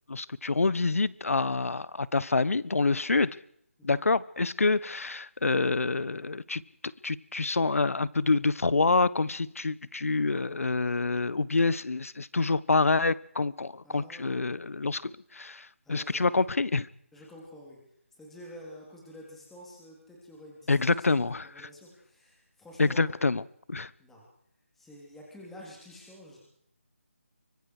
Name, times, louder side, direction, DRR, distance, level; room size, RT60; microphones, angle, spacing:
voice 1, 0.1-3.4 3.8-6.6 7.0-16.9 20.7-21.4 22.8-23.4 23.7-23.9, left 3 dB, 80° left, 1.1 m, -27 dB
voice 2, 13.8-14.4 15.8-16.3 17.1-17.8 18.1-23.2 24.0-24.2 24.7-26.4, equal, 5° left, 3.7 m, -49 dB
25.0 x 22.0 x 4.9 m
figure-of-eight pair, 170°, 7 cm